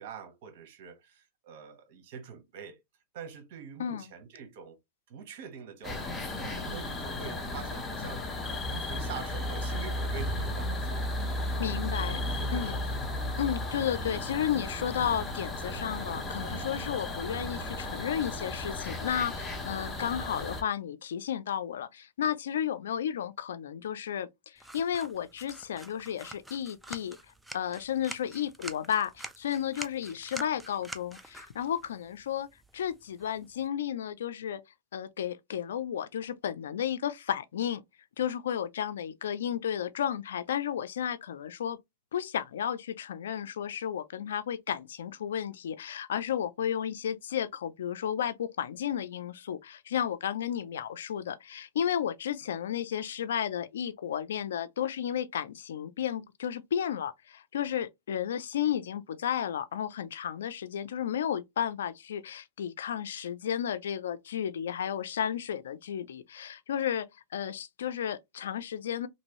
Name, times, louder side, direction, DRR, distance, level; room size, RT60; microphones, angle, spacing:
voice 1, 0.0-2.8 3.1-4.8 5.1-8.2 8.7-11.1 11.7-12.8, right 7 dB, 60° right, 1.0 m, -45 dB
voice 2, 3.8-4.1 11.6-12.2 12.5-12.8 13.4-27.2 27.5-32.5 32.7-34.6 34.9-37.8 38.2-41.8 42.1-67.1 67.3-69.1, left 9 dB, 90° left, 0.4 m, -33 dB
sound 1, 5.8-20.6, left 1 dB, 15° left, 0.9 m, -34 dB
sound 2, 24.6-33.7, right 1 dB, 5° right, 0.4 m, -47 dB
3.1 x 2.6 x 3.0 m
supercardioid pair, 135°, 0 cm